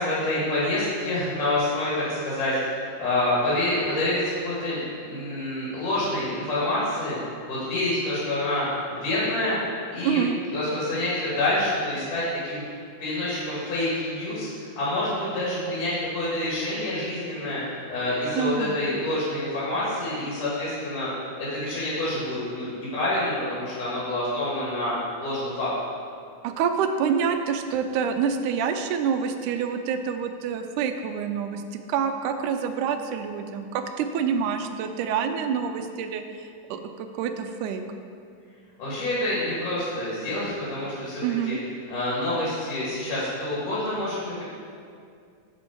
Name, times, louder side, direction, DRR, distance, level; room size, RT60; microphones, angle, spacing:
voice 1, 0.0-7.2 7.4-8.7 8.9-9.6 9.9-10.2 10.5-12.6 13.0-21.1 21.4-25.7 38.8-41.5 41.9-44.4, left 1 dB, 80° left, -8 dB, 3.4 m, -27 dB
voice 2, 10.0-10.4 18.4-18.8 26.4-31.6 31.9-36.2 36.7-37.8 41.2-41.6, right 7 dB, 80° right, 7 dB, 2.0 m, -27 dB
7.1 x 6.9 x 4.5 m, 2.3 s
omnidirectional pair, 3.6 m